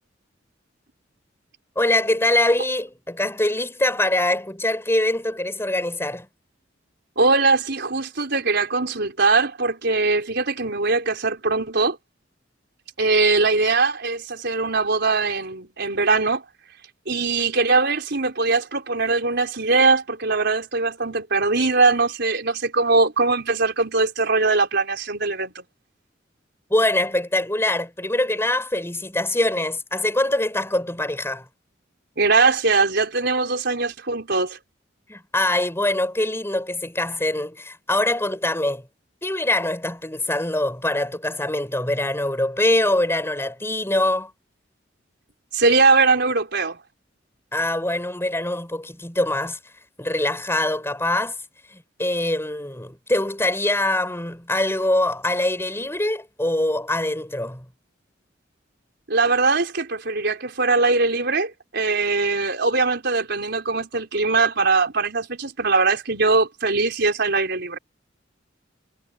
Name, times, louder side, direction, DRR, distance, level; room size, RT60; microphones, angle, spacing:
voice 1, 1.8-6.3 26.7-31.5 35.1-38.9 39.2-44.3 47.5-49.6 50.0-51.4 51.7-57.7, left 1 dB, 15° left, 7.7 m, -23 dB
voice 2, 7.2-12.0 13.0-16.4 17.1-25.6 32.2-34.6 45.5-46.8 59.1-67.8, right 3 dB, 60° right, 4.8 m, -21 dB
head